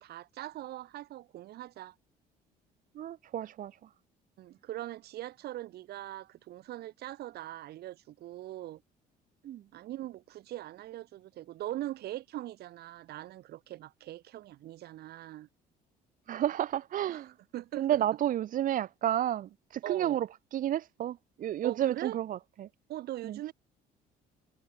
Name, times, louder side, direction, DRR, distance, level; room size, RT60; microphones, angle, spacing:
voice 1, 0.0-1.9 4.4-8.8 9.7-15.5 17.1-17.2 17.5-18.0 19.8-20.2 21.6-22.2 22.9-23.5, right 14 dB, 70° right, 1.9 m, -41 dB
voice 2, 2.9-3.9 9.4-9.6 16.3-17.3 17.8-22.7 23.2-23.4, right 11 dB, 55° right, 0.7 m, -31 dB
cardioid pair, 110°, 17 cm